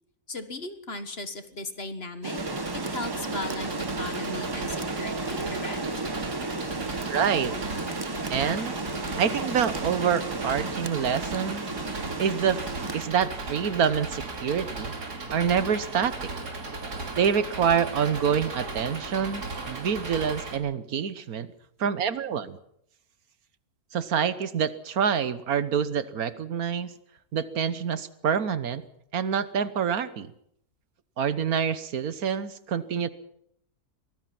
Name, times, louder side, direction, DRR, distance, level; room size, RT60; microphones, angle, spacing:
voice 1, 0.3-2.4 2.7-5.8, left 2 dB, 40° left, 10 dB, 1.7 m, -37 dB
Rain, 2.2-13.0, right 3 dB, 20° right, 0.8 m, -33 dB
Engine, 2.4-20.6, right 3 dB, 90° right, 3.2 m, -36 dB
voice 2, 7.1-7.5 8.3-8.8 9.2-11.7 12.2-12.6 12.9-14.9 15.3-16.3 17.1-21.5 21.8-22.6 23.9-26.9 27.3-28.8 29.1-30.3 31.2-33.1, right 7 dB, 70° right, 14 dB, 1.5 m, -26 dB
24.0 x 18.5 x 6.0 m, 0.71 s
omnidirectional pair, 1.6 m